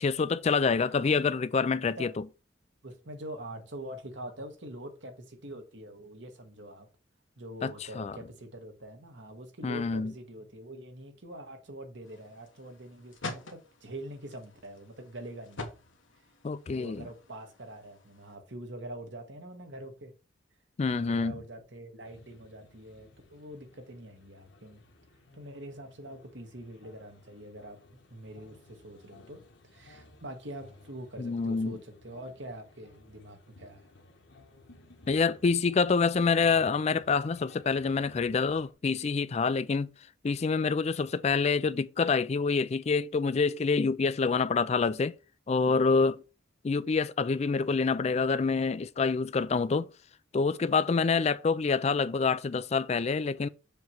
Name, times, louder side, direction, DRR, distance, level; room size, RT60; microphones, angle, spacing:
voice 1, 0.0-2.2 7.6-8.2 9.6-10.1 16.4-17.1 20.8-21.4 31.2-31.8 35.1-39.9 40.2-45.1 45.5-46.2 46.6-49.9 50.3-53.5, left 4 dB, 35° left, 0.3 m, -27 dB
voice 2, 0.9-1.3 1.7-2.1 2.8-6.9 7.4-15.7 16.7-20.1 20.9-24.8 25.3-29.4 29.7-33.9, right 1 dB, 70° right, 1.6 m, -44 dB
sound 1, 12.0-18.4, left 2 dB, 85° left, 1.2 m, -46 dB
sound 2, 22.0-38.7, left 2 dB, 70° left, 1.3 m, -57 dB
7.2 x 3.1 x 5.9 m
head